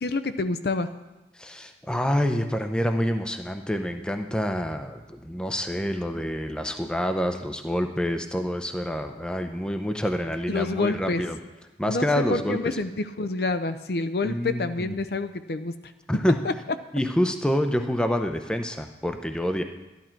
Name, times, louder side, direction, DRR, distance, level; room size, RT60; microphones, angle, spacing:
voice 1, 0.0-0.9 10.5-11.2 11.9-15.7 16.4-16.5, left 3 dB, 60° left, 10 dB, 0.6 m, -27 dB
voice 2, 1.3-11.4 11.8-12.8 14.2-14.9 16.1-16.4 16.9-19.6, equal, 5° left, 6 dB, 0.6 m, -27 dB
13.0 x 11.0 x 4.5 m, 1.1 s
head